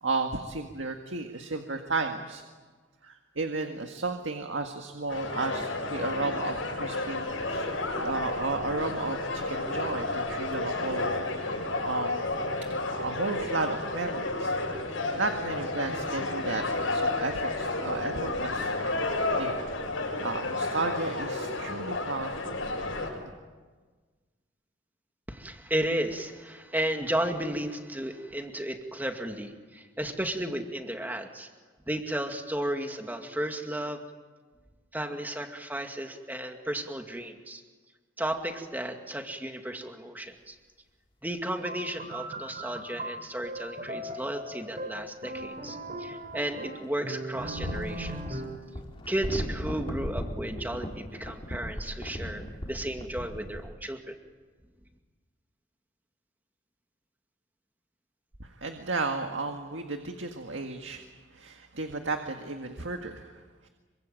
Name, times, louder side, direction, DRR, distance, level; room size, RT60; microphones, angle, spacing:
voice 1, 0.0-2.4 3.0-11.1 11.8-12.2 12.7-14.6 14.9-18.7 19.1-19.6 19.9-22.5 58.4-61.1 61.3-63.7, right 3 dB, 75° right, 4 dB, 1.8 m, -33 dB
sound 1, 5.1-23.1, left 2 dB, 80° left, 6.9 m, -31 dB
voice 2, 25.3-31.5 31.9-34.0 34.9-37.6 38.2-40.5 41.2-48.4 49.1-54.2, right 1 dB, 10° right, 4 dB, 2.2 m, -34 dB
sound 2, 41.6-48.7, right 1 dB, 40° right, 3.5 m, -39 dB
sound 3, 43.1-43.2 45.4-46.5 47.4-53.7, equal, 30° left, 3.4 m, -37 dB
27.0 x 24.5 x 9.1 m, 1.4 s
head